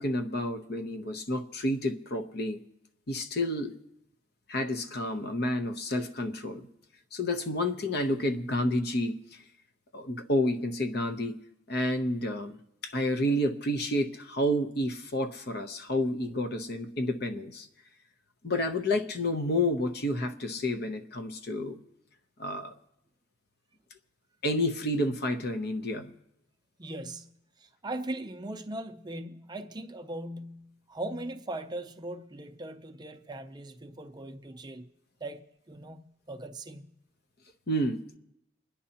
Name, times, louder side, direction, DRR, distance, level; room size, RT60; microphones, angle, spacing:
voice 1, 0.0-2.6 3.1-3.7 4.5-6.7 7.1-9.4 9.9-11.3 11.7-12.6 12.8-17.7 18.4-21.8 22.4-22.7 24.4-26.1 37.7-38.2, left 1 dB, 55° left, 0.8 m, -30 dB
voice 2, 26.8-27.3 27.6-34.9 35.2-36.0 36.3-36.9, right 1 dB, 20° right, 0.5 m, -39 dB
29.0 x 10.0 x 2.9 m
head